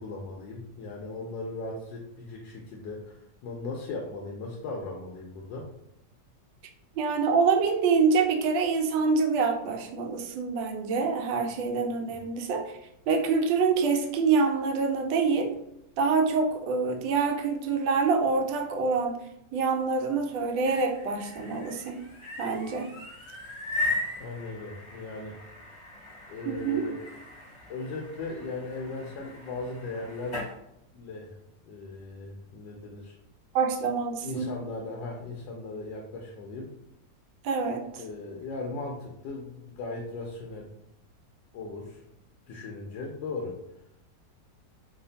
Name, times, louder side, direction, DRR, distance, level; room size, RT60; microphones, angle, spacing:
voice 1, 0.0-5.7 12.1-12.2 24.2-25.4 26.3-27.0 27.7-30.4 30.9-31.4 31.7-33.2 34.2-36.7 38.0-40.7 41.5-42.0 42.5-43.6, left 3 dB, 80° left, 0 dB, 1.2 m, -38 dB
voice 2, 7.0-12.8 13.1-15.5 16.0-19.1 19.5-22.0 22.4-22.9 26.4-26.8 33.5-34.5 37.4-38.0, right 4 dB, 80° right, 3 dB, 1.3 m, -26 dB
sound 1, 20.4-30.5, left 2 dB, 20° left, 1.0 m, -38 dB
3.3 x 2.4 x 3.9 m, 0.80 s
omnidirectional pair, 2.0 m